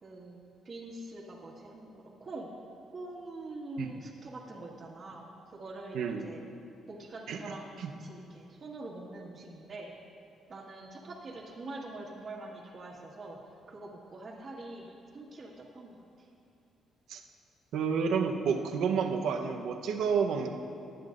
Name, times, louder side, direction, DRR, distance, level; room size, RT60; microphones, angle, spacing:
voice 1, 0.0-2.5 2.9-5.3 5.5-6.0 6.2-6.4 6.9-9.9 10.5-13.4 13.7-16.2, right 2 dB, 40° right, -8 dB, 1.8 m, -44 dB
voice 2, 5.9-6.3 7.3-7.9 17.1-17.2 17.7-20.5, right 6 dB, 80° right, 3 dB, 1.0 m, -30 dB
20.0 x 10.5 x 2.6 m, 2.6 s
cardioid pair, 90°, 0 cm